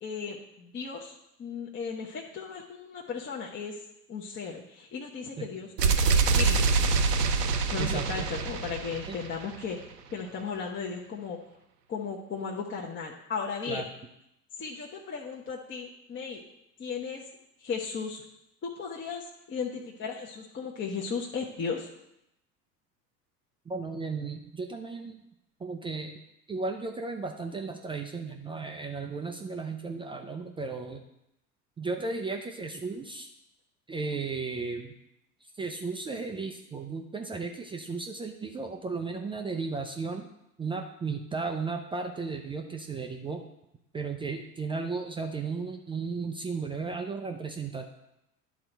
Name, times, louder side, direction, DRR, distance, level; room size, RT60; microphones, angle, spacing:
voice 1, 0.0-3.8 4.1-6.8 7.7-9.8 10.1-11.4 11.9-13.8 14.6-16.4 16.8-17.2 17.6-18.2 18.6-21.9, left 5 dB, 25° left, -2 dB, 0.9 m, -36 dB
sound 1, 5.8-9.6, right 4 dB, 80° right, 0.8 m, -25 dB
voice 2, 7.8-8.3 9.1-9.2 13.7-13.8 23.7-25.2 25.6-26.2 26.5-31.0 31.8-33.3 33.9-34.9 35.6-40.3 40.6-43.4 43.9-47.8, right 4 dB, 10° right, 3 dB, 0.4 m, -35 dB
10.5 x 3.9 x 4.5 m, 0.83 s
figure-of-eight pair, 80°, 48 cm